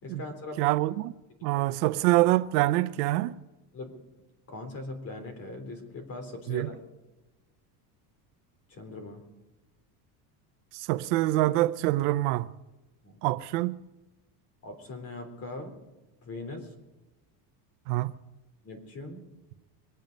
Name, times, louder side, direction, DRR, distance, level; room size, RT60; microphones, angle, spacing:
voice 1, 0.0-0.6 1.5-1.7 3.7-4.0 4.5-6.8 8.7-9.3 13.0-13.2 14.6-15.8 16.2-16.7 18.6-19.2, left 2 dB, 30° left, 3.5 m, -40 dB
voice 2, 0.6-1.1 1.4-3.4 6.5-6.7 10.7-12.5 13.2-13.8 17.9-18.1, right 17 dB, 85° right, 0.8 m, -25 dB
24.0 x 9.2 x 5.2 m
cardioid pair, 160°, 47 cm